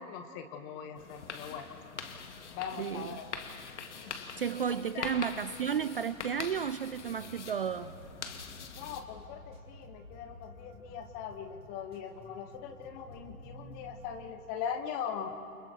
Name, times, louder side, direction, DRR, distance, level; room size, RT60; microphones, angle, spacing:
voice 1, 0.0-1.6 2.5-3.3 4.0-4.1 4.9-5.3 8.7-15.3, left 7 dB, 20° left, 8 dB, 1.0 m, -40 dB
sound 1, 0.9-9.0, left 6 dB, 50° left, 1.9 m, -44 dB
voice 2, 2.8-3.2 4.4-7.9, right 7 dB, 40° right, 14 dB, 0.4 m, -33 dB
sound 2, 6.9-14.3, equal, 15° right, 3.5 m, -52 dB
29.5 x 24.5 x 4.6 m, 2.4 s
figure-of-eight pair, 125°, 44 cm